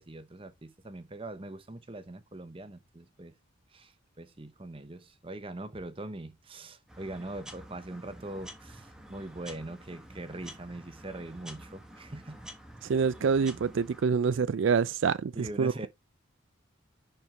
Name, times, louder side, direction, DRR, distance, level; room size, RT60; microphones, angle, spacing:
voice 1, 0.0-3.3 3.7-12.4 15.3-15.9, right 2 dB, 25° right, 0.8 m, -42 dB
sound 1, 6.9-14.0, right 1 dB, 5° right, 1.3 m, -49 dB
voice 2, 12.8-15.9, right 5 dB, 65° right, 0.4 m, -26 dB
10.5 x 4.4 x 3.3 m
head